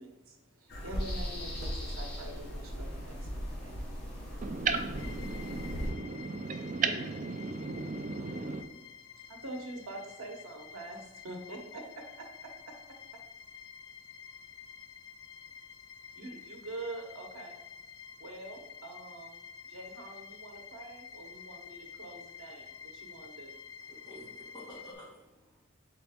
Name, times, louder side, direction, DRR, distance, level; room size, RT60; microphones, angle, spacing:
voice 1, 0.0-4.4 9.1-12.7 16.1-17.5 18.2-19.4 19.6-23.6, right 2 dB, 85° right, 0.8 m, -45 dB
sound 1, 0.7-5.9, equal, 50° left, 0.8 m, -38 dB
voice 2, 4.4-8.6, right 4 dB, 40° right, 0.3 m, -35 dB
sound 2, 5.0-24.9, left 7 dB, 70° left, 0.3 m, -50 dB
voice 3, 23.9-25.6, equal, 20° left, 1.4 m, -50 dB
4.0 x 3.4 x 3.5 m
head